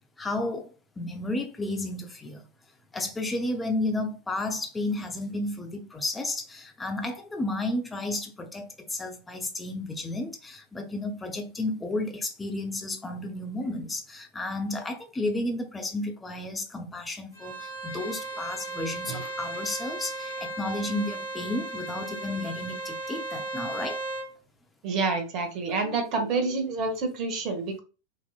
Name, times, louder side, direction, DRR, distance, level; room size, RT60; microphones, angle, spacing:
voice 1, 0.2-2.4 2.9-24.0, left 2 dB, 10° left, 0.7 m, -32 dB
Bowed string instrument, 17.3-24.3, right 2 dB, 80° right, 1.3 m, -36 dB
voice 2, 24.8-27.8, right 3 dB, 40° right, 1.2 m, -28 dB
4.2 x 2.9 x 2.4 m
figure-of-eight pair, 90°, 0 cm